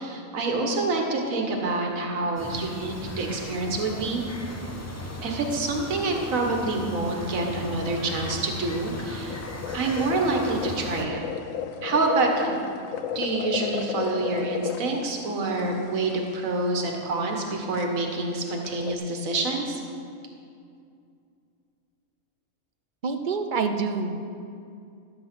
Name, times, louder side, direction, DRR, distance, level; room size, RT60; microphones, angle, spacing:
voice 1, 0.0-4.2 5.2-9.4 9.7-11.2 11.8-12.6 13.1-19.8, right 3 dB, 75° right, 1 dB, 1.7 m, -27 dB
sound 1, 2.4-11.1, left 1 dB, 15° left, 0.9 m, -37 dB
sound 2, 5.7-6.2 6.5-6.6 6.8-7.0 7.5-7.6 7.8-18.9, left 9 dB, 75° left, 1.0 m, -34 dB
voice 2, 23.0-24.3, right 4 dB, 45° right, 7 dB, 0.8 m, -27 dB
13.0 x 7.8 x 6.0 m, 2.5 s
omnidirectional pair, 1.4 m